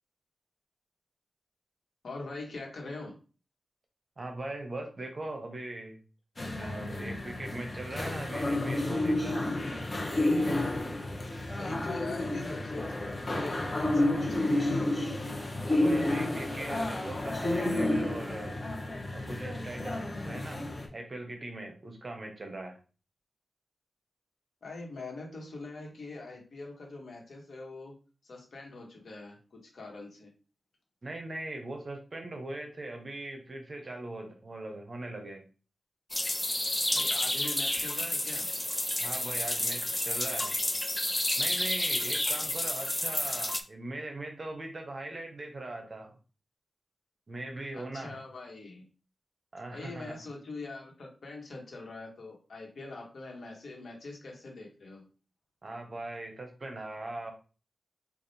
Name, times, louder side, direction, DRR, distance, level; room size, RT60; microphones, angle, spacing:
voice 1, 2.0-3.2 11.6-14.7 24.6-27.9 28.2-30.3 36.9-38.5 47.7-48.8 49.7-55.1, left 3 dB, 65° left, 0 dB, 1.3 m, -43 dB
voice 2, 4.2-6.0 6.6-9.5 13.8-13.9 15.7-18.6 19.1-20.7 20.9-22.8 31.0-35.4 39.0-40.5 41.4-46.2 47.3-48.2 49.5-50.2 55.6-57.3, right 2 dB, 40° right, 3 dB, 0.8 m, -40 dB
sound 1, 6.4-20.9, left 1 dB, 30° left, 0.9 m, -31 dB
sound 2, 36.1-43.6, left 1 dB, 15° left, 0.3 m, -30 dB
3.4 x 2.4 x 4.1 m, 0.35 s
wide cardioid pair, 150°, 0 cm